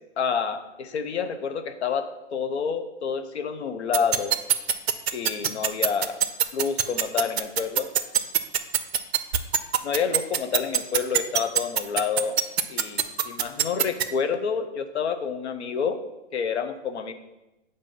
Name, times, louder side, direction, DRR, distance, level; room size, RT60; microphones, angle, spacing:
voice 1, 0.2-4.4 5.1-6.2 6.5-7.9 9.8-12.4 12.7-16.0 16.3-17.1, left 6 dB, 65° left, 9 dB, 0.7 m, -28 dB
sound 1, 3.9-14.0, right 10 dB, 60° right, 0.5 m, -21 dB
7.0 x 2.7 x 5.3 m, 0.98 s
hypercardioid pair, 170°, 36 cm